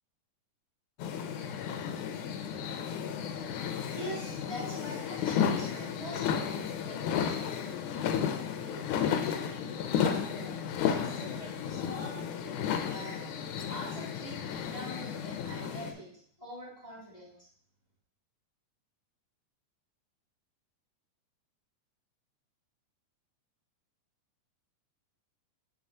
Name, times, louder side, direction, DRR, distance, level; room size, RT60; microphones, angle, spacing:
sound 1, 1.0-15.9, left 8 dB, 85° left, 2.1 m, -33 dB
voice 1, 3.9-8.3 8.6-10.6 11.0-13.2 13.7-16.1 16.4-17.3, equal, 15° left, -7 dB, 1.5 m, -45 dB
7.9 x 6.0 x 2.8 m, 0.62 s
omnidirectional pair, 3.5 m